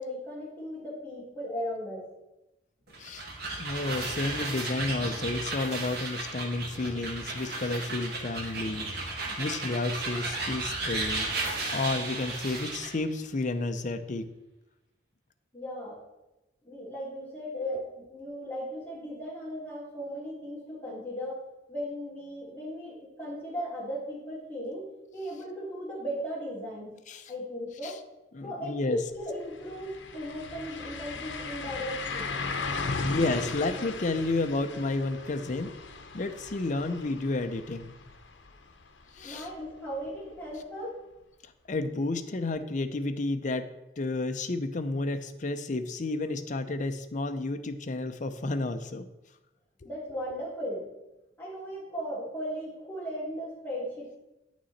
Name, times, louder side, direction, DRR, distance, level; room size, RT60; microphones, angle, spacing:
voice 1, 0.0-2.1 15.5-16.0 16.6-21.4 21.7-26.9 27.3-28.0 28.4-32.4 39.2-41.0 49.8-50.9 51.4-54.2, equal, 10° left, -7 dB, 3.0 m, -37 dB
sound 1, 2.9-13.0, right 2 dB, 60° right, 1.7 m, -34 dB
voice 2, 3.6-9.1 9.4-11.3 11.7-14.3 27.1-27.3 27.8-27.9 28.3-29.0 33.0-35.8 36.1-37.9 39.2-39.5 41.7-43.7 44.0-49.1, left 2 dB, 45° left, 8 dB, 0.6 m, -31 dB
sound 2, 29.1-29.2 29.5-39.3 39.7-39.8 42.6-42.7, left 4 dB, 80° left, 0.8 m, -37 dB
9.6 x 6.2 x 4.1 m, 0.96 s
head